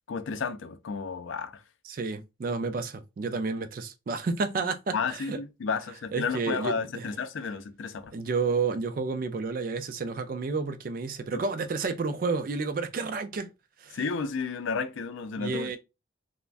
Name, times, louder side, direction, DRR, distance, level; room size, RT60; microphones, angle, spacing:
voice 1, 0.1-1.6 4.9-8.2 11.3-11.4 13.9-15.7, left 5 dB, 75° left, 0.4 m, -32 dB
voice 2, 1.9-5.4 6.1-7.1 8.1-13.5 13.8-14.0 15.4-15.8, right 4 dB, 45° right, 0.3 m, -31 dB
2.4 x 2.1 x 3.3 m
head